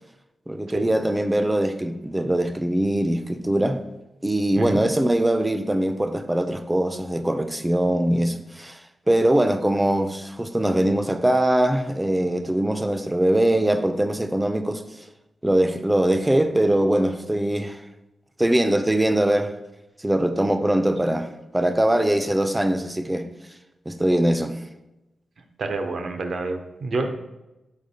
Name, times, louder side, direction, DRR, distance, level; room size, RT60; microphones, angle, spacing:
voice 1, 0.5-3.8 4.2-8.8 9.1-14.8 15.4-17.8 18.4-19.5 20.0-23.3 23.9-24.6, right 1 dB, 15° right, 0.4 m, -22 dB
voice 2, 25.6-27.1, right 3 dB, 65° right, 0.5 m, -28 dB
4.9 x 3.9 x 2.7 m
cardioid pair, 60°, 0 cm